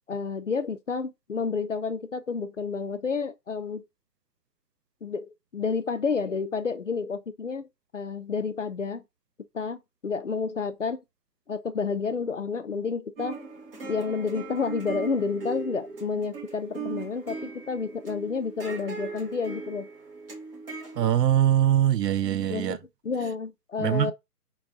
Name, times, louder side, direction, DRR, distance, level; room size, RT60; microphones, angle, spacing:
voice 1, 0.1-3.8 5.0-7.7 7.9-9.0 9.5-11.0 11.5-13.4 13.9-19.9 22.5-22.8 23.0-24.1, left 5 dB, 50° left, 0.5 m, -30 dB
sound 1, 13.2-21.1, right 4 dB, 35° right, 2.0 m, -39 dB
voice 2, 21.0-22.8 23.8-24.1, right 11 dB, 80° right, 0.6 m, -22 dB
4.0 x 2.3 x 3.5 m
hypercardioid pair, 175°, 48 cm